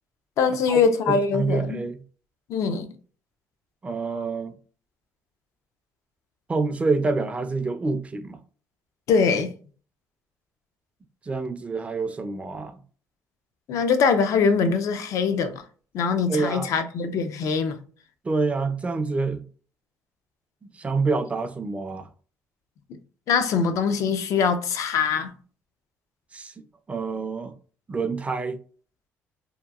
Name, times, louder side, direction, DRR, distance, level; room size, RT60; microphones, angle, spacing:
voice 1, 0.4-1.8 2.5-2.9 9.1-9.5 13.7-15.6 15.9-17.8 23.3-25.3, left 5 dB, 65° left, 0.5 m, -23 dB
voice 2, 1.1-2.0 3.8-4.5 6.5-8.4 11.3-12.8 16.3-16.7 18.2-19.4 20.7-22.1 26.3-26.5 26.9-27.5 27.9-28.6, right 4 dB, 20° right, 0.4 m, -27 dB
2.8 x 2.3 x 2.3 m
cardioid pair, 85°, 6 cm